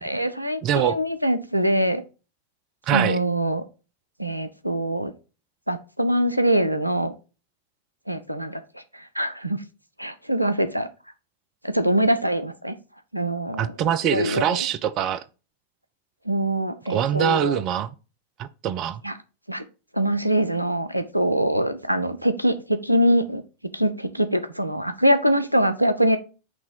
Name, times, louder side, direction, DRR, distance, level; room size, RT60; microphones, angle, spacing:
voice 1, 0.0-2.0 2.9-3.6 4.2-5.1 5.7-7.1 8.1-8.8 9.2-9.6 10.0-10.9 11.6-12.8 13.1-14.6 16.3-17.6 19.0-19.1 19.5-19.6 19.9-23.4 23.7-26.2, right 1 dB, 90° right, 0.5 m, -23 dB
voice 2, 0.6-1.0 2.9-3.2 13.6-15.2 16.9-17.9 18.4-19.0, right 10 dB, 35° right, 0.4 m, -23 dB
6.1 x 3.0 x 5.4 m
figure-of-eight pair, 90°, 0 cm